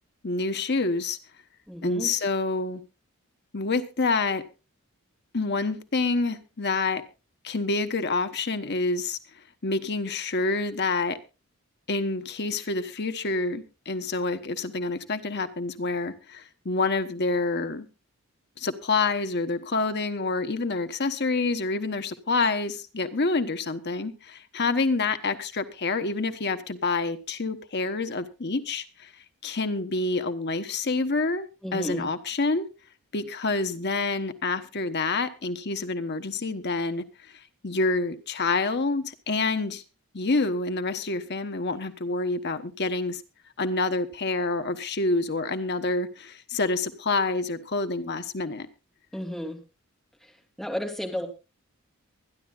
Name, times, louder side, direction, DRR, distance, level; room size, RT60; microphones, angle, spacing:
voice 1, 0.2-1.2 1.8-2.8 3.5-4.4 5.3-7.0 7.4-9.2 9.6-11.2 11.9-17.9 18.6-29.1 29.4-32.7 33.1-39.8 40.1-43.2 43.6-48.7, left 3 dB, 50° left, 1.1 m, -27 dB
voice 2, 1.7-2.1 31.6-32.1 49.1-49.6 50.2-51.3, equal, ahead, 3.1 m, -33 dB
23.5 x 11.0 x 2.4 m
head